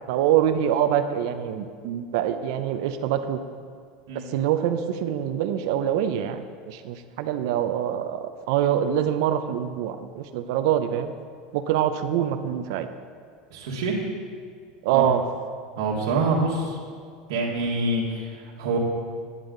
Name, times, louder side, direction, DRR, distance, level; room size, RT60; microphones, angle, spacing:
voice 1, 0.1-3.4 4.1-11.1 11.5-12.9 14.8-15.2, right 10 dB, 70° right, 8 dB, 0.6 m, -25 dB
voice 2, 13.5-14.0 14.9-15.0 15.8-16.8 17.3-18.8, right 3 dB, 85° right, -4 dB, 1.6 m, -26 dB
9.7 x 9.0 x 3.8 m, 2.1 s
supercardioid pair, 140°, 2 cm